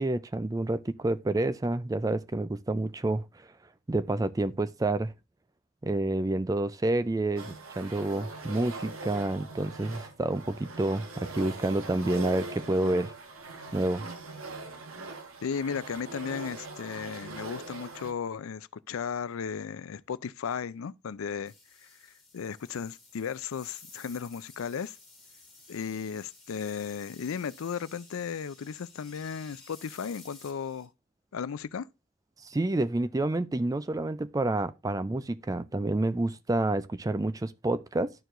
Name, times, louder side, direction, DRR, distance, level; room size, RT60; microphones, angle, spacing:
voice 1, 0.0-3.5 3.9-5.1 5.8-13.1 13.7-14.1 32.4-38.1, right 2 dB, 15° right, 0.3 m, -29 dB
sound 1, 7.4-18.1, right 3 dB, 80° right, 1.3 m, -42 dB
voice 2, 15.4-21.5 21.8-21.9 22.3-25.0 25.7-30.9 31.3-31.9, left 6 dB, 80° left, 0.4 m, -35 dB
sound 2, 21.4-30.8, left 2 dB, ahead, 2.4 m, -54 dB
12.5 x 4.6 x 2.5 m
head